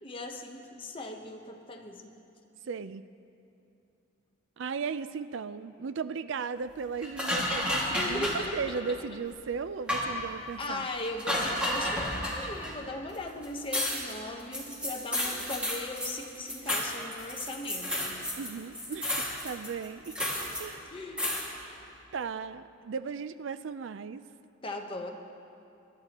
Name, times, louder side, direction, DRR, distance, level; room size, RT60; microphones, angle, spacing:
voice 1, 0.0-2.1 7.9-8.8 10.6-18.2 20.9-21.3 24.6-25.1, left 2 dB, 25° left, 1 dB, 1.0 m, -38 dB
voice 2, 2.7-3.0 4.6-10.9 18.4-20.2 20.6-20.9 22.1-24.2, right 5 dB, 65° right, 13 dB, 0.4 m, -36 dB
sound 1, 7.0-8.5 9.3-9.4 9.9-10.1 11.0-12.8 13.1-13.2 13.4-18.5 18.7-20.6 21.2-21.5, left 1 dB, 5° right, 2.0 m, -31 dB
26.0 x 11.5 x 3.0 m, 2.7 s
head